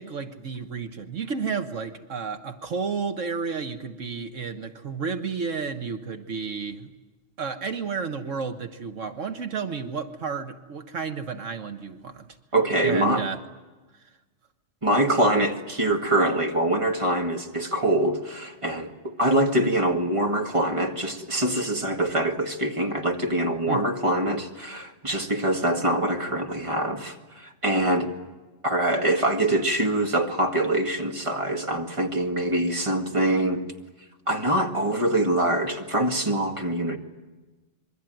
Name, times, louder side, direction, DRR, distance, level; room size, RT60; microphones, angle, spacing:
voice 1, 0.0-6.9 7.4-12.3 12.8-13.4 23.7-23.9, right 5 dB, 80° right, 7 dB, 1.7 m, -31 dB
voice 2, 12.5-13.3 14.8-28.1 28.6-33.7 34.3-37.0, right 1 dB, 25° right, 3 dB, 2.1 m, -24 dB
27.0 x 23.0 x 9.3 m, 1.2 s
omnidirectional pair, 1.3 m